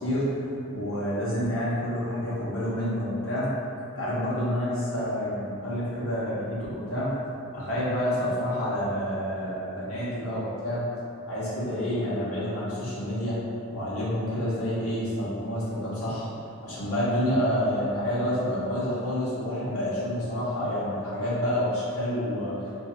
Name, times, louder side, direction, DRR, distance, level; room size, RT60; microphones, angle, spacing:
voice 1, 0.0-3.5 3.9-7.1 7.5-10.8 11.2-13.4 13.7-16.2 16.6-22.7, equal, 85° left, -10 dB, 1.0 m, -28 dB
2.7 x 2.6 x 2.4 m, 2.7 s
head